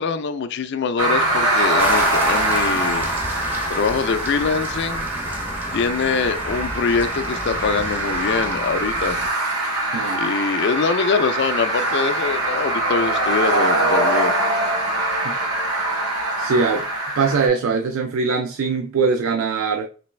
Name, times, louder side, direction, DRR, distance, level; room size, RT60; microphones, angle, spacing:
voice 1, 0.0-3.1 3.4-5.1 5.7-9.2 10.1-14.3, left 5 dB, 50° left, 0.3 m, -23 dB
sound 1, 1.0-17.5, right 1 dB, 80° right, 1.0 m, -23 dB
sound 2, 1.8-9.3, equal, 10° right, 0.5 m, -33 dB
voice 2, 16.4-16.9 17.2-19.9, right 4 dB, 65° right, 0.3 m, -21 dB
3.3 x 3.0 x 3.1 m
head